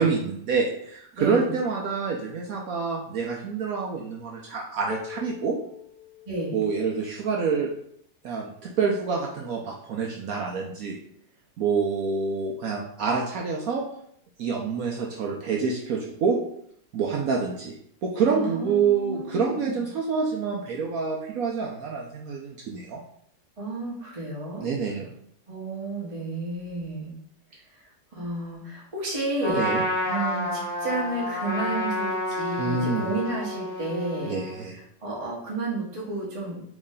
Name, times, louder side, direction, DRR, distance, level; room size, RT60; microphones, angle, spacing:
voice 1, 0.0-5.6 6.5-7.7 8.2-11.0 11.6-13.8 14.4-16.4 16.9-17.8 18.0-23.0 24.6-25.0 29.6-29.8 32.6-33.1 34.3-34.8, right 5 dB, 70° right, -1 dB, 0.9 m, -27 dB
voice 2, 1.2-1.5 6.3-6.6 18.3-19.8 23.6-24.7 25.5-27.1 28.1-29.6 30.1-34.4 34.7-36.6, right 2 dB, 25° right, -5 dB, 0.9 m, -31 dB
sound 1, 4.9-6.9, left 10 dB, 65° left, 1.0 m, -41 dB
Trumpet, 29.4-34.6, left 1 dB, 25° left, 1.2 m, -29 dB
4.0 x 3.2 x 3.6 m, 0.68 s
omnidirectional pair, 2.0 m